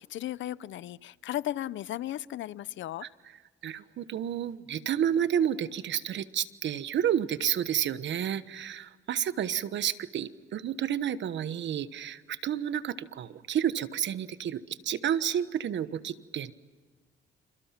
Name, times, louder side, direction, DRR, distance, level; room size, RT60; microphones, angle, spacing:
voice 1, 0.0-3.0, left 13 dB, 70° left, 19 dB, 0.7 m, -35 dB
voice 2, 3.6-16.5, right 9 dB, 65° right, 14 dB, 1.2 m, -30 dB
28.0 x 28.0 x 5.9 m, 1.5 s
cardioid pair, 90°, 20 cm